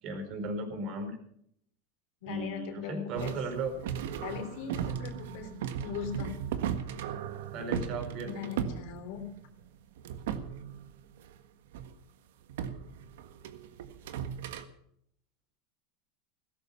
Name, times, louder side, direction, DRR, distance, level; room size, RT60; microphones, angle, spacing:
voice 1, 0.0-1.2 2.2-3.7 7.5-8.5, right 2 dB, 50° right, 7 dB, 4.5 m, -36 dB
voice 2, 2.2-3.3 4.2-6.4 8.2-9.3, left 8 dB, 65° left, 6 dB, 3.3 m, -40 dB
sound 1, 3.1-9.6 10.0-11.3 11.7-11.9 12.5-14.6, right 8 dB, 80° right, 1.6 m, -37 dB
16.5 x 13.5 x 5.8 m, 0.70 s
supercardioid pair, 135°, 0 cm